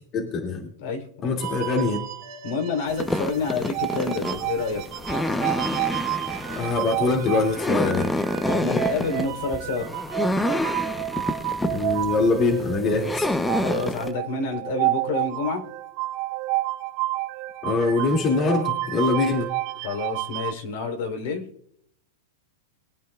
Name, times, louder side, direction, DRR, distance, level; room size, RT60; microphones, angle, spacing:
voice 1, 0.1-0.7 1.2-2.0 6.6-8.1 11.7-13.3 17.6-19.5, left 3 dB, 35° left, 1 dB, 2.5 m, -23 dB
voice 2, 0.8-1.4 2.4-4.8 8.5-9.9 13.5-15.6 19.8-21.4, left 4 dB, 60° left, 3 dB, 3.7 m, -28 dB
sound 1, 1.4-20.5, right 15 dB, 45° right, 1.1 m, -30 dB
sound 2, 2.9-14.1, left 1 dB, 10° left, 0.9 m, -28 dB
23.5 x 9.4 x 2.4 m, 0.71 s
hypercardioid pair, 110°, 0 cm